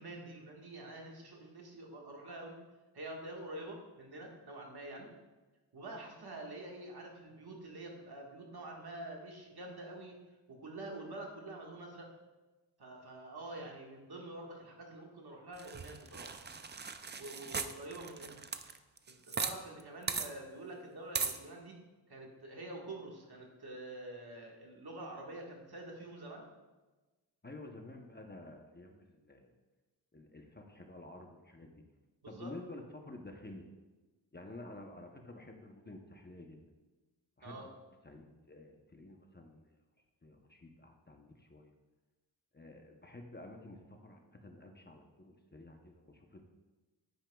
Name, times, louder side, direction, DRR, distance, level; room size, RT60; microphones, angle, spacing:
voice 1, 0.0-2.5 2.9-5.1 5.7-10.2 10.5-12.1 12.8-16.3 17.2-18.4 19.1-21.8 22.1-26.5 32.2-32.5 37.4-37.7, right 2 dB, 60° right, 0 dB, 1.6 m, -47 dB
sound 1, 15.6-19.5 19.8-19.9 20.1-20.3 21.1-21.4, right 5 dB, 25° right, 0.4 m, -38 dB
voice 2, 27.4-29.5 30.1-31.8 32.3-33.7 34.3-36.6 37.4-37.7 38.0-39.8 40.2-41.7 42.5-46.4, left 2 dB, 25° left, 2 dB, 0.7 m, -51 dB
9.8 x 9.1 x 2.3 m, 1.2 s
wide cardioid pair, 115°, 44 cm